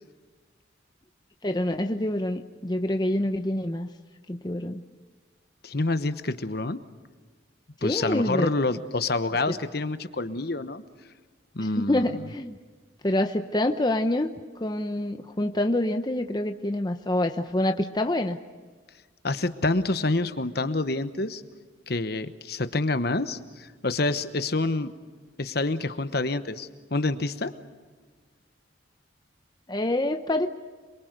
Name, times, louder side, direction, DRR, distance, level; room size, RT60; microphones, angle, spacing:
voice 1, 1.4-3.9 4.3-4.8 7.8-8.5 9.5-9.6 11.6-12.5 13.0-14.3 14.6-18.4 29.7-30.5, left 1 dB, 20° left, 6 dB, 0.8 m, -26 dB
voice 2, 5.6-6.8 7.8-10.8 11.5-12.1 19.2-21.4 21.9-24.9 25.4-27.5, left 2 dB, 55° left, 11 dB, 1.1 m, -27 dB
27.0 x 23.0 x 6.7 m, 1.5 s
head